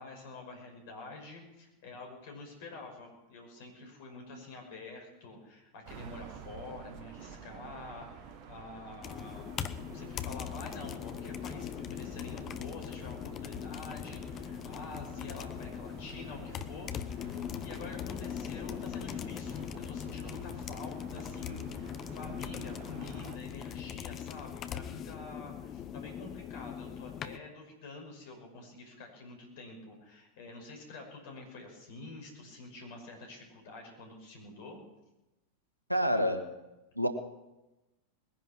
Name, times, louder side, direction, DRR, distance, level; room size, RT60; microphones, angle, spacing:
voice 1, 0.0-34.8, left 3 dB, 50° left, 1 dB, 5.7 m, -47 dB
sound 1, 5.9-23.4, right 7 dB, 40° right, 1.3 m, -50 dB
sound 2, 9.0-27.4, left 9 dB, 30° left, 0.8 m, -40 dB
voice 2, 35.9-36.4 36.9-37.1, equal, 90° right, 7 dB, 1.6 m, -27 dB
20.5 x 10.5 x 6.1 m, 1.0 s
figure-of-eight pair, 90°, 0 cm